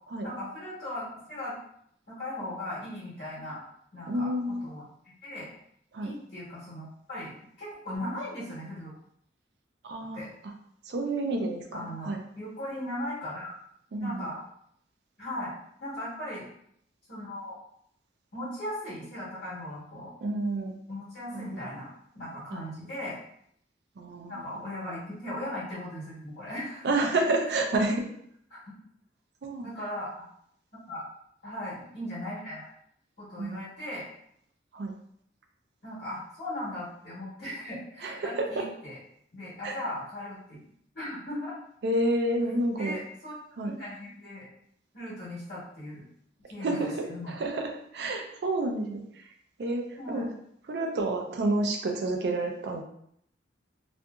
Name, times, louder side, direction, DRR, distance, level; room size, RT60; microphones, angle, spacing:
voice 1, 0.2-1.6 2.1-3.6 3.9-5.5 6.0-7.3 7.6-8.9 10.1-10.3 11.7-13.6 14.0-14.4 15.2-15.5 15.8-16.4 17.1-17.6 18.3-20.1 20.9-21.9 22.1-23.2 24.3-27.1 28.5-28.7 29.6-30.1 30.9-31.0 31.4-32.7 33.2-34.0 35.8-39.0 39.3-40.6 40.9-41.6 42.7-43.3 43.6-44.5 44.9-46.0 46.5-47.3 50.0-50.3, left 1 dB, 55° left, -9 dB, 1.0 m, -38 dB
voice 2, 4.1-4.7 5.9-6.2 9.8-10.2 10.9-12.2 13.9-14.3 20.2-20.7 21.3-21.7 22.5-22.7 24.0-24.6 26.8-28.1 29.4-29.7 33.4-33.6 34.7-34.9 38.0-38.7 39.6-39.8 41.8-43.0 43.6-43.7 46.6-49.3 49.6-50.3 50.7-52.8, right 2 dB, 60° right, 3 dB, 0.4 m, -30 dB
2.7 x 2.5 x 2.3 m, 0.70 s
head